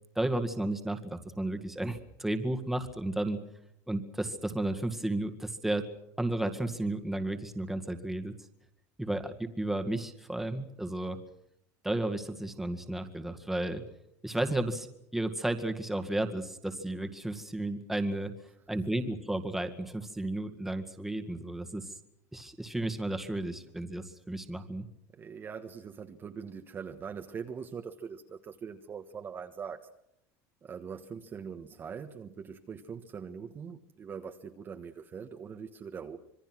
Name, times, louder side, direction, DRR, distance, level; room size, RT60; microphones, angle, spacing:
voice 1, 0.2-3.4 3.9-5.9 6.2-8.3 9.0-11.2 11.8-13.8 14.2-14.9 15.1-18.3 18.7-21.9 22.3-24.9, right 1 dB, 5° right, 6 dB, 2.0 m, -33 dB
voice 2, 25.1-29.9 30.6-36.2, right 6 dB, 25° right, 5 dB, 1.4 m, -42 dB
26.5 x 22.5 x 6.2 m, 0.76 s
cardioid pair, 150°, 8 cm